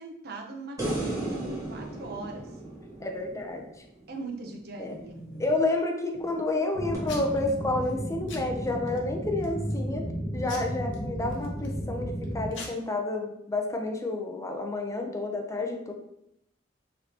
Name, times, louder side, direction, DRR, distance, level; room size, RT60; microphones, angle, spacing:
voice 1, 0.0-2.6 4.1-5.2, right 3 dB, 55° right, 2 dB, 0.7 m, -40 dB
sound 1, 0.8-4.1 6.9-7.0, right 2 dB, 20° right, 1.3 m, -35 dB
voice 2, 3.0-3.6 4.8-5.0 5.4-15.9, left 2 dB, 15° left, 3 dB, 0.5 m, -30 dB
Packing tape duct tape / Tearing, 4.4-5.7 6.1-6.6 7.1-7.5 7.8-8.0 8.3-9.0 9.4-9.8 10.5-11.8 12.2-12.3 12.5-12.7, left 2 dB, 75° left, 0.9 m, -44 dB
sound 2, 6.7-12.5, equal, 55° left, 1.1 m, -34 dB
3.2 x 2.7 x 4.2 m, 0.78 s
head